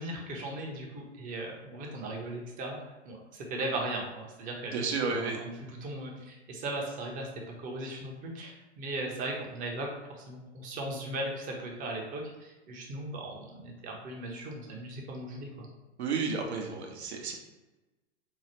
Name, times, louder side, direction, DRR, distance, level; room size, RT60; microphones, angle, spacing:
voice 1, 0.0-2.8 3.1-7.3 7.6-15.7, right 1 dB, 25° right, 0 dB, 0.7 m, -38 dB
voice 2, 4.7-5.4 16.0-17.4, right 4 dB, 65° right, 2 dB, 0.8 m, -32 dB
4.6 x 2.1 x 2.9 m, 1.1 s
hypercardioid pair, 115°, 35 cm